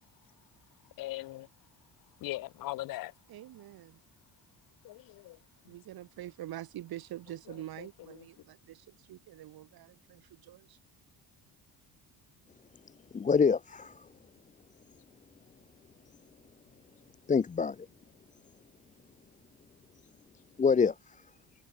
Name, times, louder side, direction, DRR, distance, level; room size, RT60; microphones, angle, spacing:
voice 1, 1.0-1.5 2.2-3.1 4.8-5.4 7.8-7.9, left 17 dB, 60° left, 0.5 m, -39 dB
voice 2, 3.3-4.0 5.7-10.8, right 13 dB, 65° right, 2.4 m, -45 dB
voice 3, 13.1-14.1 17.3-17.9 20.6-21.2, left 5 dB, 20° left, 0.6 m, -26 dB
cardioid pair, 125°, 39 cm